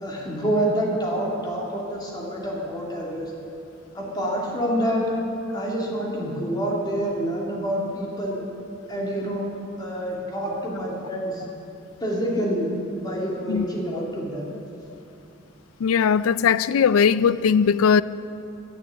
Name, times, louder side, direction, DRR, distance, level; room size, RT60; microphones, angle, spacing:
voice 1, 0.0-3.3 3.9-5.1 5.5-8.4 8.9-9.5 9.8-11.4 12.0-12.7 13.0-14.4, equal, 20° left, 2.7 m, -27 dB
voice 2, 15.8-18.0, left 6 dB, 85° left, 0.4 m, -19 dB
10.5 x 10.5 x 8.3 m
head